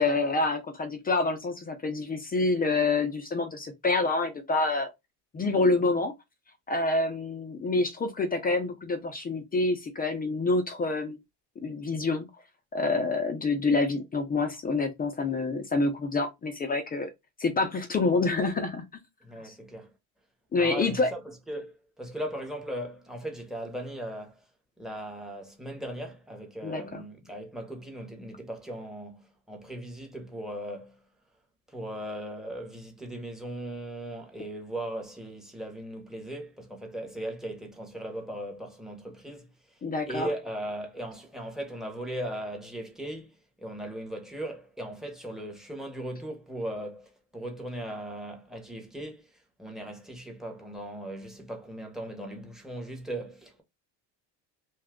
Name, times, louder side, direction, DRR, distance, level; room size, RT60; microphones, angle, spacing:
voice 1, 0.0-4.9 5.3-6.1 6.7-11.2 11.6-12.3 12.7-17.1 17.4-18.8 19.4-19.5 20.5-21.1 26.6-27.0 39.8-40.3, left 3 dB, 20° left, 0.4 m, -27 dB
voice 2, 19.2-19.9 20.5-24.4 24.8-31.0 31.7-53.6, right 1 dB, ahead, 0.8 m, -38 dB
2.6 x 2.3 x 3.5 m
cardioid pair, 120°, 42 cm